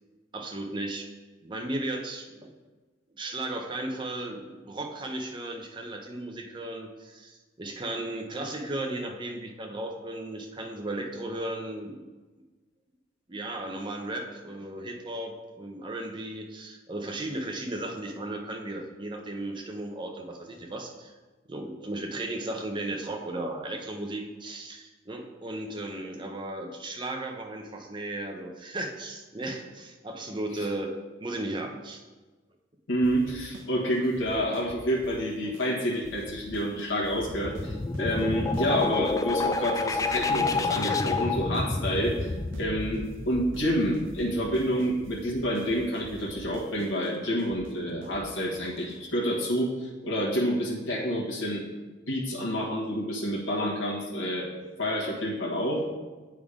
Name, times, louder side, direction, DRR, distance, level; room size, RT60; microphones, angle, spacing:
voice 1, 0.3-1.1 1.4-2.5 3.2-12.1 13.3-21.1 21.5-30.9 31.2-32.0, right 1 dB, 25° right, 2 dB, 0.7 m, -35 dB
voice 2, 32.9-42.3 42.6-51.6 52.1-54.5 54.8-55.9, equal, 85° left, -5 dB, 1.4 m, -28 dB
sound 1, 33.0-33.7 33.9-35.2 35.5-35.7 35.9-39.2 39.5-39.7 39.9-41.7 41.9-43.2 43.5-43.7 43.9-49.0, right 2 dB, 75° right, 0.7 m, -47 dB
sound 2, 37.1-44.7, left 3 dB, 15° left, 0.3 m, -29 dB
8.4 x 3.7 x 4.9 m, 1.3 s
head